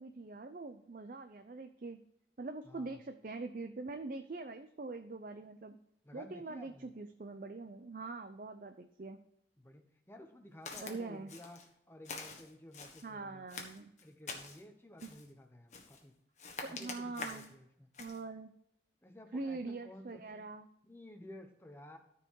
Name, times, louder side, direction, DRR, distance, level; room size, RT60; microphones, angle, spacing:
voice 1, 0.0-2.0 2.4-5.8 6.1-9.2 10.8-11.3 13.0-13.9 16.6-17.5 18.0-18.5 19.3-20.7, right 3 dB, 50° right, 8 dB, 0.5 m, -43 dB
voice 2, 2.6-3.0 6.0-6.9 9.6-11.6 11.9-13.5 14.0-16.1 16.6-17.9 19.0-20.4 20.8-22.0, left 1 dB, 15° left, 5 dB, 1.0 m, -54 dB
Walk footsteps, 10.7-11.0 11.3-11.7 12.0-13.1 13.5-14.6 15.0-15.3 15.7-16.0 16.4-17.5 17.9-18.2, left 4 dB, 40° left, 1.3 m, -46 dB
13.5 x 4.7 x 4.7 m, 0.75 s
head